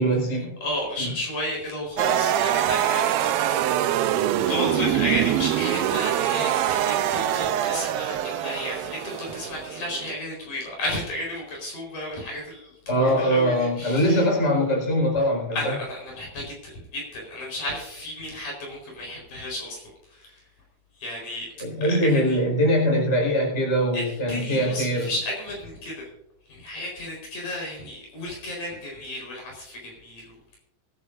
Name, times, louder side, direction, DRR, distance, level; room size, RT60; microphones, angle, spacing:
voice 1, 0.0-0.6 1.0-1.1 12.9-15.7 21.6-25.1, equal, 15° left, -1 dB, 4.9 m, -22 dB
voice 2, 0.6-3.3 3.7-14.3 15.5-19.8 20.1-20.3 21.0-21.5 21.8-22.4 23.9-26.1 26.5-30.6, left 1 dB, 55° left, -1 dB, 6.0 m, -33 dB
sound 1, 2.0-10.1, right 11 dB, 85° right, 2.5 m, -24 dB
25.0 x 10.5 x 2.6 m, 0.81 s
omnidirectional pair, 4.4 m